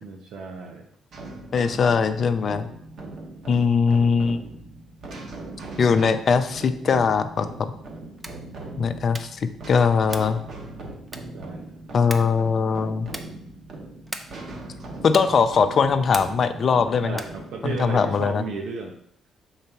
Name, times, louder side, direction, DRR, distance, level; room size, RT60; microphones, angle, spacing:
voice 1, 0.0-0.9 11.3-11.8 17.0-19.0, right 4 dB, 85° right, 1 dB, 0.7 m, -34 dB
sound 1, 1.1-17.8, right 2 dB, 60° right, 1.2 m, -40 dB
voice 2, 1.5-2.7 3.5-4.4 5.8-7.7 8.8-10.4 11.9-13.1 15.0-17.2 17.6-18.4, left 5 dB, 50° left, 9 dB, 0.5 m, -21 dB
sound 2, 8.1-8.5 9.1-9.5 10.1-10.4 11.1-11.5 12.1-12.4 13.1-13.4 14.1-14.5 15.1-15.4 16.1-16.5 17.1-17.4, right 1 dB, 15° right, 0.6 m, -38 dB
5.5 x 4.0 x 4.5 m, 0.70 s
cardioid pair, 90°, 0 cm